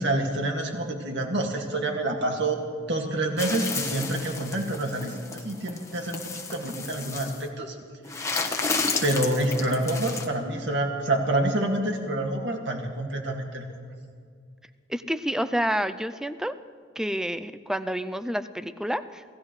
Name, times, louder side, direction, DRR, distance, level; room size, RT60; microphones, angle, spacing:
voice 1, 0.0-6.2 6.5-7.8 8.1-13.6, right 1 dB, 65° right, 2 dB, 2.1 m, -28 dB
sound 1, 3.4-7.4 8.0-10.3, left 4 dB, 15° left, 1.1 m, -32 dB
voice 2, 14.9-16.5 17.0-19.2, equal, 5° right, 11 dB, 0.4 m, -29 dB
27.0 x 16.5 x 3.2 m, 2.1 s
head